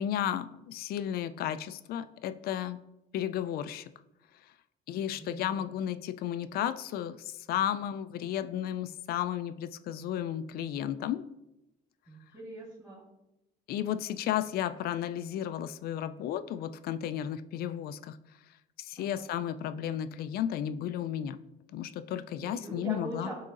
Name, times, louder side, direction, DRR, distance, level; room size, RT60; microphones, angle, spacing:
voice 1, 0.0-2.8 3.1-3.9 4.9-11.2 13.7-18.2 18.8-21.4 21.7-23.3, left 10 dB, 65° left, 12 dB, 0.4 m, -33 dB
voice 2, 5.2-5.7 12.1-13.0 19.0-19.3 22.4-23.3, right 1 dB, 15° right, -8 dB, 2.1 m, -42 dB
10.5 x 3.8 x 2.5 m, 0.90 s
cardioid pair, 110°, 17 cm